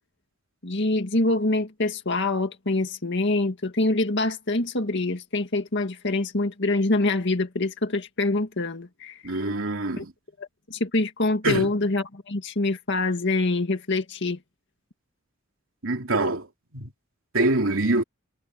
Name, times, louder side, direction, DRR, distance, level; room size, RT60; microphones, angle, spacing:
voice 1, 0.6-9.2 10.0-10.1 10.4-14.4, left 2 dB, 60° left, 2.0 m, -25 dB
voice 2, 9.2-10.1 11.4-11.7 15.8-16.5 16.7-16.9 17.3-18.0, right 2 dB, 75° right, 3.1 m, -24 dB
head